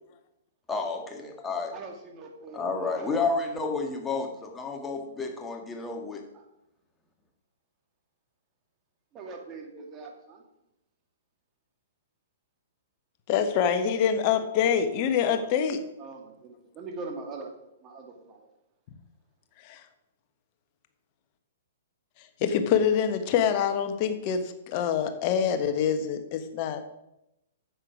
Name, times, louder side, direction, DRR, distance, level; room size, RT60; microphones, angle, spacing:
voice 1, 0.7-1.7 2.5-6.2, left 4 dB, 10° left, 2 dB, 1.9 m, -31 dB
voice 2, 1.7-3.9 9.1-10.4 14.3-14.4 15.3-15.4 16.0-17.5 17.8-18.5, right 3 dB, 25° right, 1 dB, 2.3 m, -42 dB
voice 3, 13.3-15.8 19.6-19.8 22.4-26.9, left 8 dB, 35° left, 8 dB, 1.3 m, -25 dB
9.7 x 8.0 x 5.0 m, 0.86 s
figure-of-eight pair, 115°, 0 cm